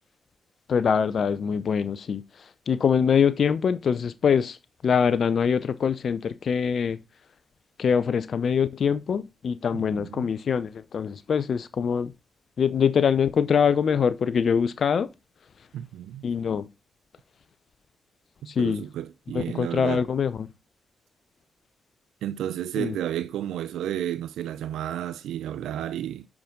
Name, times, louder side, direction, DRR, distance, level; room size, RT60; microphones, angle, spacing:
voice 1, 0.7-4.6 4.8-7.0 7.8-12.1 12.6-15.1 16.2-16.7 18.5-18.8 19.3-20.5 22.8-23.0, left 7 dB, 60° left, 0.6 m, -24 dB
voice 2, 9.7-10.3 15.7-16.3 18.4-20.0 22.2-26.3, right 11 dB, 80° right, 0.4 m, -32 dB
8.7 x 5.9 x 3.7 m
hypercardioid pair, 45°, 0 cm